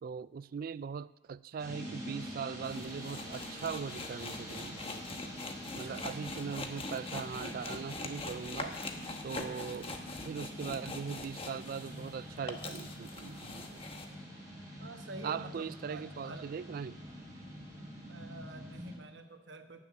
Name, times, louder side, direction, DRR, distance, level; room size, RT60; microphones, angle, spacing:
voice 1, 0.0-4.8 5.7-8.7 9.2-10.0 10.2-13.8 15.2-17.1, right 6 dB, 50° right, 18 dB, 0.3 m, -40 dB
sound 1, 1.6-18.9, equal, 20° right, 4.6 m, -46 dB
sound 2, 2.6-12.1 12.4-14.1, left 3 dB, 30° left, 1.1 m, -43 dB
voice 2, 5.6-6.4 14.8-16.5 18.1-19.8, right 3 dB, 70° right, 7 dB, 1.2 m, -48 dB
17.5 x 6.7 x 7.1 m, 1.1 s
head